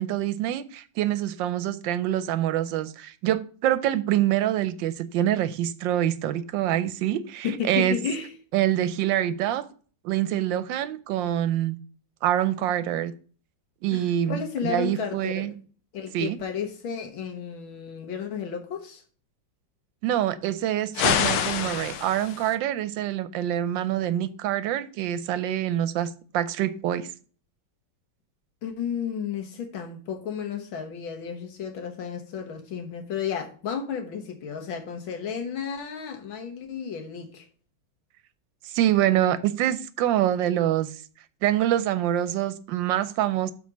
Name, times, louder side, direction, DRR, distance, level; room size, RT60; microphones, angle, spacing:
voice 1, 0.0-8.0 8.5-9.7 10.0-11.8 12.2-13.1 13.8-15.5 16.1-16.4 20.0-27.1 38.6-40.9 41.4-43.5, right 12 dB, 80° right, 1.2 m, -25 dB
voice 2, 7.4-8.3 13.9-15.6 15.9-19.0 28.6-37.5, left 7 dB, 90° left, 2.0 m, -33 dB
sound 1, 20.9-22.6, left 8 dB, 70° left, 1.2 m, -26 dB
6.1 x 4.2 x 6.0 m
omnidirectional pair, 2.1 m